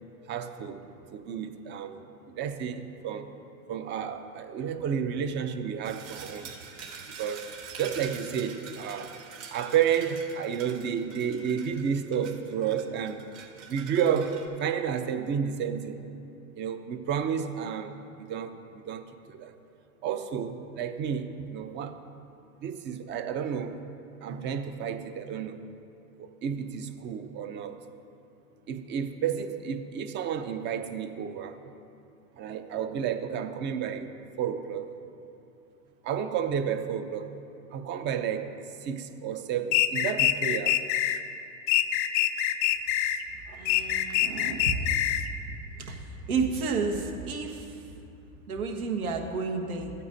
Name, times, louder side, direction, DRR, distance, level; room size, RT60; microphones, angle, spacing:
voice 1, 0.3-0.8 1.1-3.3 3.7-6.5 7.2-7.5 7.8-9.1 9.5-13.2 13.7-16.0 16.6-17.9 18.3-19.6 20.0-22.0 22.6-23.8 24.2-25.6 26.2-27.8 28.7-31.6 32.4-34.1 34.4-35.0 36.0-37.3 37.7-40.8, right 8 dB, 25° right, 9 dB, 0.5 m, -31 dB
sound 1, 5.8-14.5, right 6 dB, 60° right, 2.1 m, -45 dB
sound 2, 39.7-41.2 41.7-43.2 43.7-45.3, left 13 dB, 35° left, 0.4 m, -25 dB
voice 2, 43.5-45.1 45.8-47.9 48.5-49.9, right 4 dB, 85° right, 2 dB, 1.5 m, -31 dB
15.5 x 9.2 x 2.7 m, 2.7 s
hypercardioid pair, 120°, 42 cm